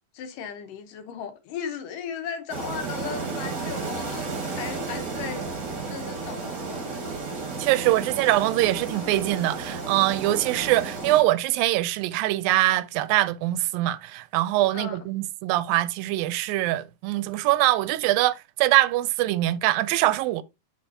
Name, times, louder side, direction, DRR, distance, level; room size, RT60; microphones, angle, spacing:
voice 1, 0.1-7.2 14.7-15.0, left 7 dB, 75° left, 2.5 m, -37 dB
sound 1, 2.5-11.2, right 4 dB, 40° right, 1.8 m, -33 dB
voice 2, 7.6-20.4, right 16 dB, 85° right, 2.3 m, -23 dB
7.6 x 6.9 x 2.8 m
omnidirectional pair, 4.1 m